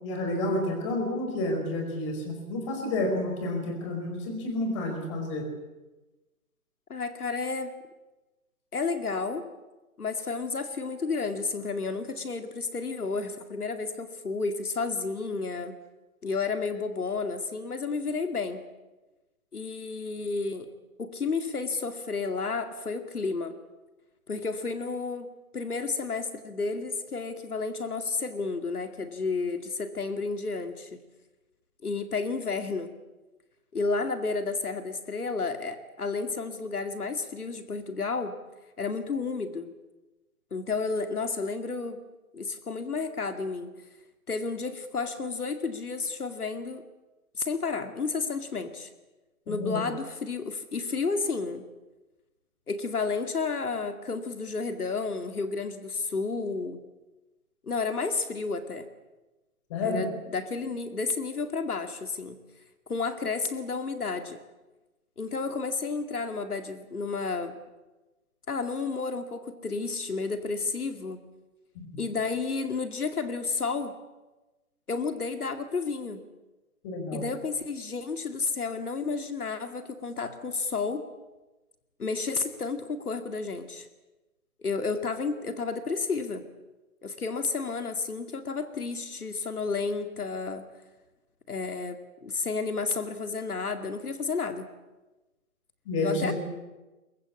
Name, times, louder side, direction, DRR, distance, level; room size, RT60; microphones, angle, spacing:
voice 1, 0.0-5.4 49.5-49.8 59.7-60.0 71.7-71.9 76.8-77.2 95.9-96.3, left 2 dB, 20° left, 4 dB, 4.7 m, -30 dB
voice 2, 6.9-7.7 8.7-9.4 10.0-15.7 16.2-18.6 19.5-20.7 21.0-23.5 24.3-31.0 31.8-32.9 33.7-38.3 38.8-39.7 40.5-42.0 42.3-43.7 44.3-46.8 47.3-48.9 49.5-51.6 52.7-56.8 57.6-58.9 59.8-62.4 62.9-64.4 65.2-67.6 68.5-71.2 72.0-73.9 74.9-76.2 77.1-81.0 82.0-83.9 84.6-86.4 87.0-90.6 91.5-94.7 96.0-96.3, left 4 dB, 85° left, 8 dB, 2.4 m, -31 dB
23.0 x 21.5 x 8.4 m, 1.1 s
hypercardioid pair, 165°, 44 cm